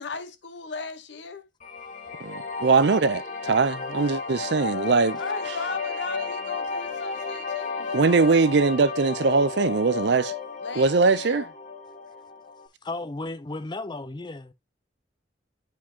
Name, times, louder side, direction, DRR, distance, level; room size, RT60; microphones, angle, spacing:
voice 1, 0.0-1.5 5.2-8.1 10.6-11.5, left 4 dB, 70° left, 1.0 m, -37 dB
sound 1, 1.6-12.7, left 4 dB, 40° left, 1.2 m, -33 dB
voice 2, 2.2-5.2 7.9-10.3 10.8-11.4, right 4 dB, 65° right, 0.5 m, -21 dB
voice 3, 12.8-14.5, left 2 dB, 25° left, 0.5 m, -34 dB
9.5 x 4.6 x 2.8 m
head